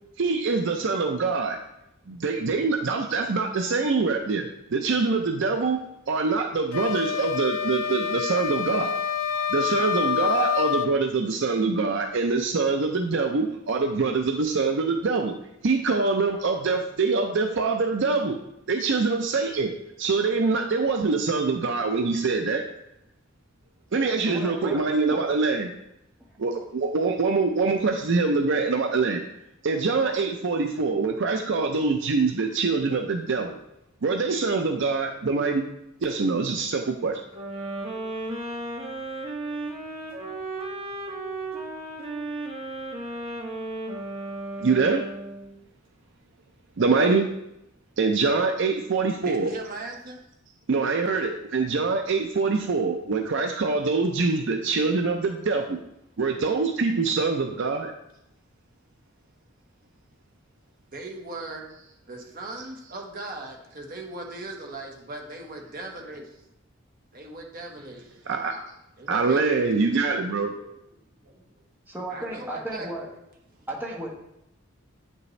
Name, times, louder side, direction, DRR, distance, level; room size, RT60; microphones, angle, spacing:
voice 1, 0.2-1.6 2.1-5.8 6.1-9.0 9.5-15.3 15.6-18.4 18.7-19.7 20.0-22.7 23.9-25.7 26.4-29.2 29.6-33.6 34.0-35.7 36.0-37.2 44.6-45.1 46.8-47.3 48.0-49.5 50.7-55.8 56.2-57.9 68.3-68.6 69.1-70.5, right 4 dB, 60° right, 4 dB, 0.5 m, -24 dB
sound 1, 6.7-10.9, left 7 dB, 90° left, 0.5 m, -27 dB
voice 2, 24.2-25.3 71.9-73.1 73.7-74.1, right 1 dB, 10° right, -2 dB, 1.2 m, -34 dB
sound 2, 37.3-45.5, right 2 dB, 30° right, 1.5 m, -34 dB
voice 3, 49.2-50.2 60.9-61.7 62.1-66.5 67.1-68.2 69.0-69.7 70.5-70.7 71.2-71.4 72.1-72.9 73.5-73.7, right 2 dB, 45° right, 1 dB, 1.3 m, -39 dB
9.1 x 5.3 x 3.2 m, 0.84 s
head